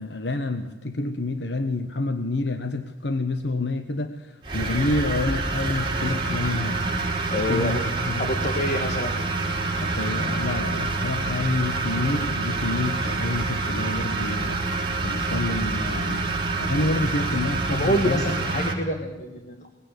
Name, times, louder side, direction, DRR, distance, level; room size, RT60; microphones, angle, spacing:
voice 1, 0.0-6.8 7.5-8.3 9.8-16.3 16.6-18.2 18.5-18.6, left 2 dB, 80° left, 9 dB, 1.1 m, -28 dB
sound 1, 4.4-18.7, right 3 dB, 30° right, 4.3 m, -27 dB
voice 2, 7.3-7.8 8.2-9.2 17.7-19.7, equal, 45° left, 5 dB, 2.0 m, -27 dB
21.0 x 16.5 x 8.1 m, 1.2 s
head